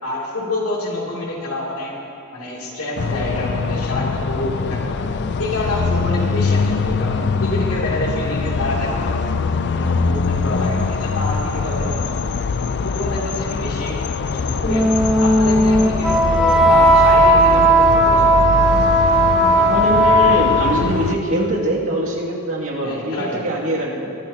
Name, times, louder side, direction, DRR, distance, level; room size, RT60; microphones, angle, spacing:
voice 1, 0.0-2.0 2.3-5.1 5.4-9.2 9.7-12.4 12.8-14.9 15.2-18.5 22.8-23.5, left 1 dB, 75° left, -3 dB, 2.9 m, -27 dB
sound 1, 3.0-21.2, left 4 dB, 50° left, 0.4 m, -23 dB
Wind instrument woodwind instrument, 14.6-20.8, right 1 dB, 5° right, 1.2 m, -15 dB
voice 2, 19.5-23.2 23.4-24.1, equal, 65° right, -4 dB, 2.5 m, -22 dB
22.0 x 12.5 x 2.9 m, 2.9 s
head